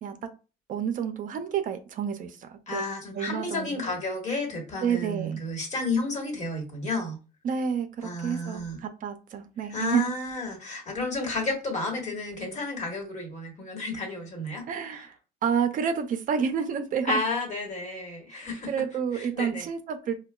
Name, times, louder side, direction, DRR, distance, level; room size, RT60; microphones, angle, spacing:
voice 1, 0.7-2.8 3.1-4.0 4.8-5.4 7.4-10.0 14.7-15.2 15.4-17.1 18.7-20.2, right 7 dB, 50° right, 7 dB, 0.5 m, -29 dB
voice 2, 2.7-7.2 8.0-8.8 9.7-14.6 17.0-18.7 19.1-19.7, left 2 dB, 45° left, 2 dB, 1.3 m, -31 dB
4.4 x 2.2 x 2.2 m, 0.34 s
cardioid pair, 110°, 17 cm